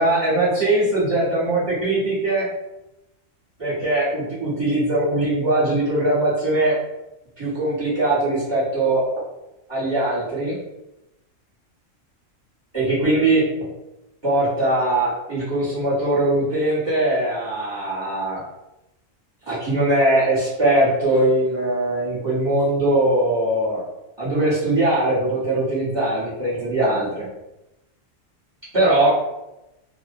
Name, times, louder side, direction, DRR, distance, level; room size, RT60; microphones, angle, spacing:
voice 1, 0.0-2.5 3.6-6.8 7.4-9.0 9.7-10.6 12.7-13.7 14.2-18.4 19.5-23.8 24.2-27.3 28.7-29.2, right 1 dB, 20° right, -11 dB, 1.0 m, -21 dB
2.4 x 2.1 x 2.6 m, 0.94 s
omnidirectional pair, 1.3 m